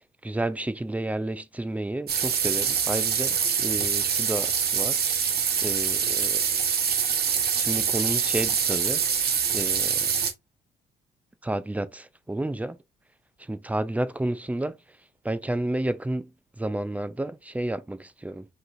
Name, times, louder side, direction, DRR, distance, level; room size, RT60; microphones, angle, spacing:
voice 1, 0.2-5.0 5.6-6.4 7.6-9.0 9.5-10.1 11.4-12.8 13.5-14.8 15.2-16.3 16.6-18.5, right 1 dB, 5° right, 0.4 m, -31 dB
sound 1, 2.1-10.3, right 7 dB, 50° right, 0.9 m, -25 dB
5.1 x 3.1 x 2.5 m
cardioid pair, 90°, 20 cm